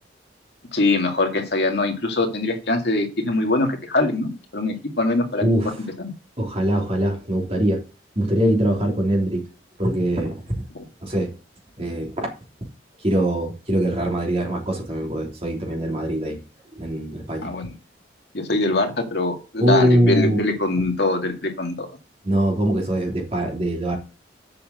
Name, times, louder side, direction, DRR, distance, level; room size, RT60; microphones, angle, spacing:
voice 1, 0.7-5.4 6.0-6.1 10.8-10.9 17.4-17.7 18.3-21.9, left 2 dB, 65° left, 2.0 m, -23 dB
voice 2, 5.4-5.7 6.4-7.8 8.1-9.4 9.8-10.6 11.0-11.3 11.8-12.3 13.0-16.4 16.7-17.5 19.6-20.4 20.8-20.9 22.2-24.0, right 1 dB, 35° right, 3.2 m, -22 dB
7.6 x 6.0 x 7.6 m
head